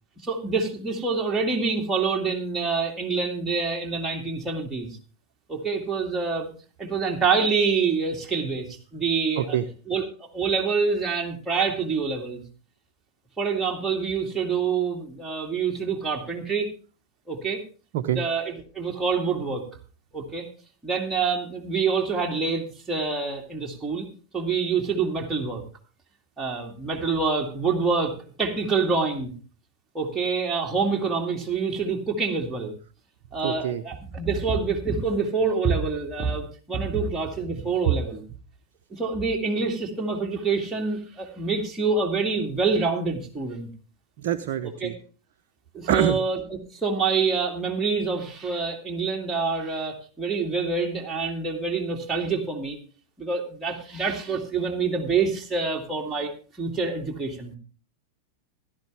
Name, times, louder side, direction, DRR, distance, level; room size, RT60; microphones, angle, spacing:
voice 1, 0.2-5.0 5.5-6.5 6.8-9.6 9.9-12.4 13.4-16.7 17.3-17.6 18.1-19.6 20.1-20.5 20.8-24.1 24.3-25.6 26.4-28.1 28.4-29.3 29.9-32.7 33.3-38.2 38.9-43.7 44.8-44.9 45.7-46.4 46.7-52.8 53.2-56.3 56.6-57.5, right 4 dB, 10° right, -1 dB, 2.3 m, -26 dB
voice 2, 33.4-33.8 44.2-44.9 45.9-46.2, right 10 dB, 50° right, 8 dB, 0.8 m, -25 dB
16.0 x 12.0 x 3.4 m, 0.37 s
figure-of-eight pair, 90°, 0 cm